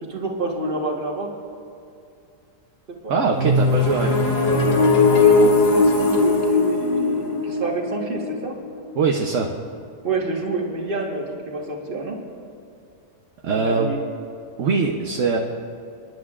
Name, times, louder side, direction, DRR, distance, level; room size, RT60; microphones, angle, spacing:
voice 1, 0.0-1.3 3.0-3.1 5.0-8.5 10.0-12.2 13.5-14.0, right 3 dB, 40° right, 0 dB, 1.6 m, -28 dB
voice 2, 3.1-4.4 9.0-9.5 13.4-13.9 14.6-15.4, right 4 dB, 65° right, 2 dB, 1.1 m, -22 dB
sound 1, 3.3-9.1, left 3 dB, 65° left, 1.9 m, -19 dB
28.0 x 10.5 x 2.4 m, 2.5 s
omnidirectional pair, 1.5 m